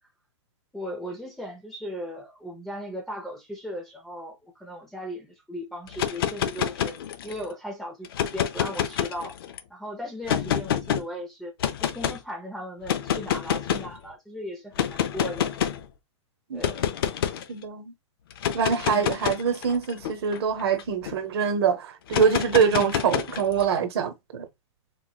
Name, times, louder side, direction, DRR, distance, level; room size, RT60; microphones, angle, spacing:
voice 1, 0.7-7.0 7.2-9.4 9.7-11.5 11.8-15.5 16.5-16.9 22.6-22.9, equal, ahead, 0.5 m, -37 dB
sound 1, 5.9-7.4 8.0-9.6 10.3-11.0 11.6-12.2 12.8-13.9 14.8-15.8 16.6-17.4 18.3-21.1 22.1-23.6, left 9 dB, 50° left, 0.5 m, -28 dB
voice 2, 17.5-17.9 18.5-24.5, right 6 dB, 55° right, 0.9 m, -24 dB
3.8 x 3.0 x 2.3 m
hypercardioid pair, 175°, 16 cm